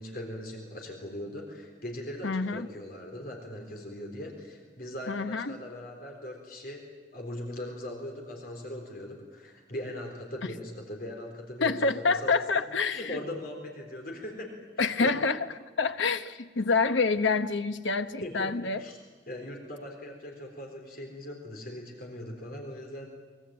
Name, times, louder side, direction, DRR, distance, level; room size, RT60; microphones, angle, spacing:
voice 1, 0.0-6.8 7.1-12.4 12.9-15.1 18.2-19.0 19.3-23.1, left 1 dB, 50° left, 2 dB, 3.8 m, -40 dB
voice 2, 2.2-2.7 5.1-5.6 11.6-13.2 14.8-15.4 15.8-18.8, left 4 dB, 85° left, 10 dB, 1.1 m, -27 dB
24.0 x 22.0 x 8.8 m, 1.4 s
head